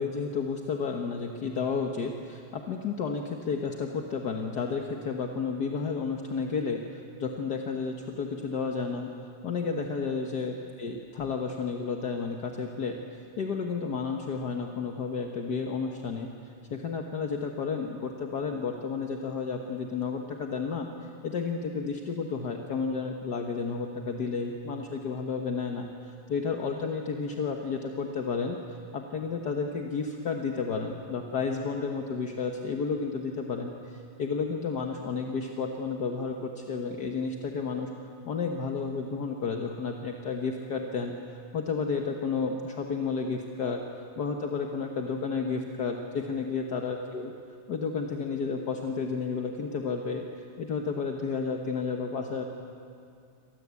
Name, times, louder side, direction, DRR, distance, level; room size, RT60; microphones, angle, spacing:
voice 1, 0.0-9.1 9.4-16.3 16.7-20.9 21.2-28.6 28.9-37.9 38.3-43.8 44.2-47.3 47.7-52.4, left 5 dB, 60° left, 3 dB, 1.9 m, -32 dB
28.5 x 25.0 x 8.4 m, 2.4 s
omnidirectional pair, 2.0 m